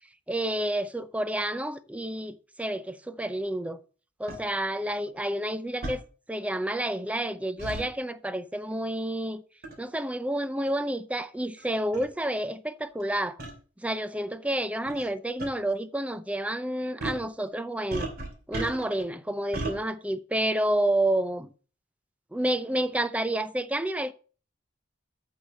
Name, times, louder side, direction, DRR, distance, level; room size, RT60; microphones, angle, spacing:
voice 1, 0.3-3.8 4.2-6.0 6.3-9.4 9.8-13.4 13.8-18.1 18.5-21.5 22.3-24.1, right 1 dB, 5° right, 0.6 m, -29 dB
sound 1, 4.3-4.4 5.8-6.0 7.6-7.9 9.6-9.8 10.7-10.8 11.6-11.7 11.9-12.1 13.4-13.5 14.9-15.1 15.4-15.5 17.0-17.3 17.9-19.0 19.5-19.8, right 2 dB, 55° right, 3.1 m, -34 dB
8.5 x 6.5 x 6.5 m
head